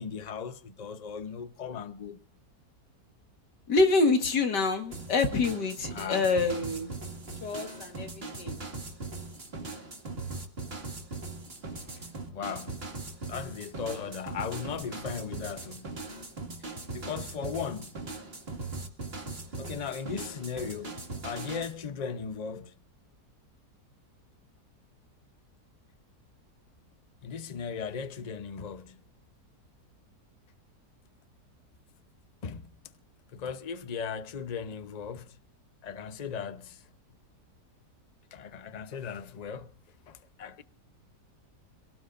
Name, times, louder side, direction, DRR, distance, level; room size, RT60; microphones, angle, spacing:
voice 1, 0.0-2.2 5.9-6.3 12.3-12.8 13.3-16.0 16.9-18.0 19.6-21.0 21.2-22.7 27.2-29.0 32.4-32.7 33.3-35.4 35.8-36.8 38.3-39.7 40.1-40.6, left 6 dB, 35° left, 0.8 m, -37 dB
voice 2, 3.7-6.9 7.4-8.6, left 3 dB, 85° left, 2.3 m, -26 dB
sound 1, 4.9-21.7, right 3 dB, 35° right, 2.3 m, -40 dB
26.5 x 18.0 x 2.6 m
omnidirectional pair, 1.8 m